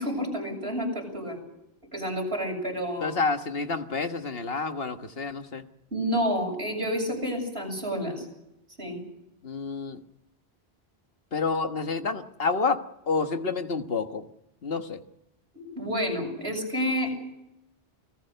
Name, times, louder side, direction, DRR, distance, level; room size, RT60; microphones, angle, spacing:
voice 1, 0.0-1.4 1.9-3.1 5.9-8.3 8.8-9.0 15.5-17.1, equal, 80° right, 2 dB, 7.6 m, -29 dB
voice 2, 3.0-5.6 9.4-10.0 11.3-14.3 14.6-15.0, left 4 dB, 65° left, 7 dB, 1.6 m, -29 dB
29.0 x 19.0 x 6.8 m, 0.87 s
omnidirectional pair, 1.1 m